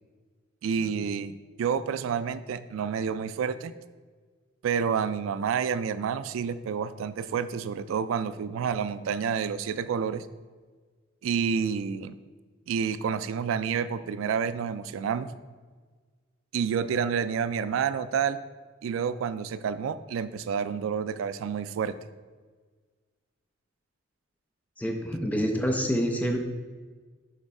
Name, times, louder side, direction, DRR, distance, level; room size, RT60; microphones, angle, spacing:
voice 1, 0.6-3.7 4.6-10.3 11.2-12.1 12.7-15.3 16.5-18.4 18.8-22.0, right 7 dB, 75° right, 13 dB, 0.3 m, -29 dB
voice 2, 24.8-26.4, equal, 5° left, 3 dB, 0.5 m, -27 dB
6.6 x 3.1 x 4.7 m, 1.4 s
head